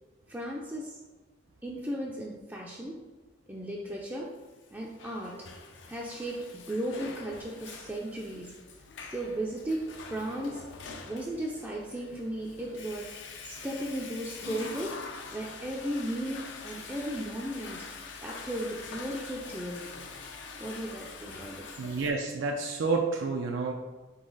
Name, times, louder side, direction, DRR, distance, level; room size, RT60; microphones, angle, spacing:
voice 1, 0.3-1.0 1.6-3.0 3.5-4.3 4.7-5.4 5.9-8.5 9.1-10.6 11.1-13.1 13.4-15.0 15.3-19.8 20.6-21.7, right 1 dB, 10° right, -3 dB, 0.4 m, -36 dB
Water / Toilet flush, 4.6-22.1, left 4 dB, 75° left, 0.5 m, -44 dB
voice 2, 21.8-23.7, right 4 dB, 85° right, 1 dB, 0.4 m, -29 dB
3.9 x 3.2 x 3.8 m, 1.2 s
head